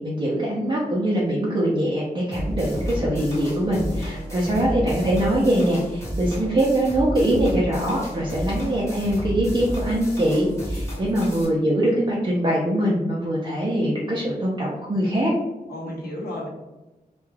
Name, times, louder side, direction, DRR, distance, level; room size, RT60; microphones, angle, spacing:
voice 1, 0.0-15.3, right 1 dB, 30° right, -5 dB, 0.5 m, -23 dB
sound 1, 2.3-11.5, equal, 20° left, 1.0 m, -31 dB
voice 2, 4.3-5.2 15.7-16.5, left 1 dB, 75° left, -4 dB, 0.8 m, -34 dB
2.2 x 2.2 x 3.2 m, 1.0 s
wide cardioid pair, 115°, 16 cm